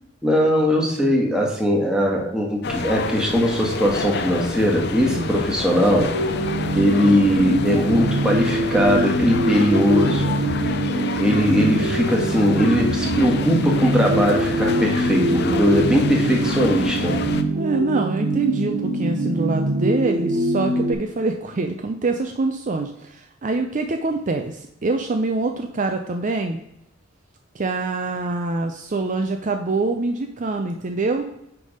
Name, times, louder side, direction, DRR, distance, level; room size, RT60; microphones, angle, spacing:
voice 1, 0.2-6.1 6.7-10.3 11.2-17.2, equal, 5° right, -1 dB, 1.5 m, -20 dB
sound 1, 2.6-17.4, left 4 dB, 50° left, 0.6 m, -29 dB
sound 2, 6.1-20.9, right 1 dB, 75° right, 0.9 m, -24 dB
voice 2, 17.6-26.6 27.5-31.3, right 3 dB, 35° right, 5 dB, 0.4 m, -25 dB
9.4 x 3.5 x 5.0 m, 0.84 s
head